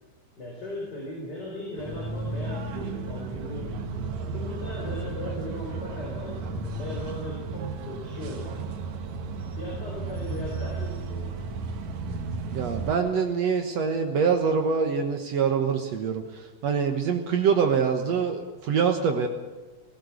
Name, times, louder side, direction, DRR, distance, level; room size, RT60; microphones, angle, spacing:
voice 1, 0.4-3.8 4.3-8.6 9.6-11.5, left 2 dB, 25° left, -2 dB, 4.5 m, -38 dB
sound 1, 1.8-12.9, right 4 dB, 60° right, 2.1 m, -34 dB
voice 2, 12.5-19.3, right 6 dB, 80° right, 5 dB, 1.5 m, -25 dB
19.5 x 17.0 x 8.1 m, 1.3 s
omnidirectional pair, 5.0 m